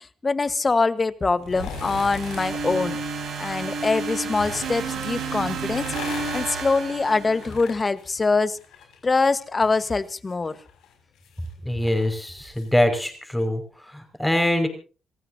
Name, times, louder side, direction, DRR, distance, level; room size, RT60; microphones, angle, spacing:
voice 1, 0.2-3.0 3.4-5.9 6.3-8.6 9.0-10.6, left 3 dB, 25° left, 13 dB, 1.3 m, -23 dB
sound 1, 1.4-2.6 3.7-4.8 5.5-9.0 9.3-12.7 13.1-13.2, left 7 dB, 85° left, 6.0 m, -41 dB
sound 2, 1.6-7.8, right 4 dB, 75° right, 7.3 m, -31 dB
voice 2, 11.7-13.6 13.9-14.7, left 1 dB, 5° left, 6 dB, 5.6 m, -23 dB
29.0 x 15.5 x 2.8 m, 0.36 s
cardioid pair, 90°, 0 cm